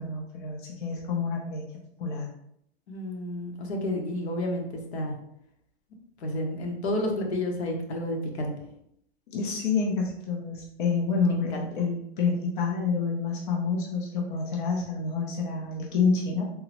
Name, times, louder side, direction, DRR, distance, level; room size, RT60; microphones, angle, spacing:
voice 1, 0.0-2.3 9.3-16.5, left 4 dB, 55° left, -1 dB, 0.6 m, -28 dB
voice 2, 2.9-5.2 6.2-8.5 11.2-11.4, left 1 dB, 85° left, 2 dB, 0.9 m, -30 dB
3.6 x 2.0 x 2.9 m, 0.73 s
supercardioid pair, 170°, 32 cm